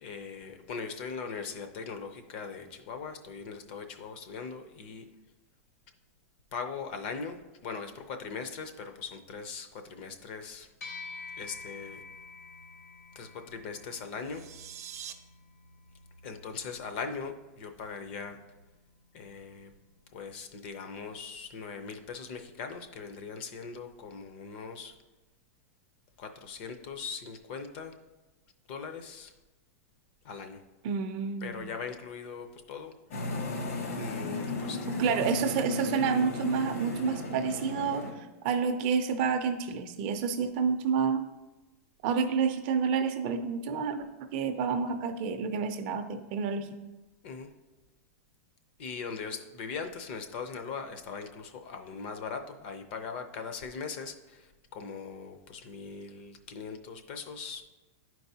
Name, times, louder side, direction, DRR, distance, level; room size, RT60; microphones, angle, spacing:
voice 1, 0.0-5.0 6.5-7.4 7.6-10.7 11.4-12.0 13.2-14.4 16.2-18.4 19.1-19.7 20.1-24.9 26.2-27.9 28.7-29.3 30.2-30.6 31.4-32.9 34.0-35.3 47.2-47.5 48.8-57.6, left 5 dB, 40° left, 7 dB, 0.6 m, -40 dB
sound 1, 10.8-20.4, left 4 dB, 85° left, 1.3 m, -50 dB
sound 2, 14.1-15.1, right 10 dB, 80° right, 0.6 m, -44 dB
voice 2, 30.8-31.7 34.9-41.3 42.0-46.7, right 6 dB, 40° right, 8 dB, 0.4 m, -29 dB
sound 3, 33.1-38.1, left 3 dB, 65° left, 1.2 m, -35 dB
10.5 x 4.6 x 2.8 m, 1.1 s
supercardioid pair, 170°, 8 cm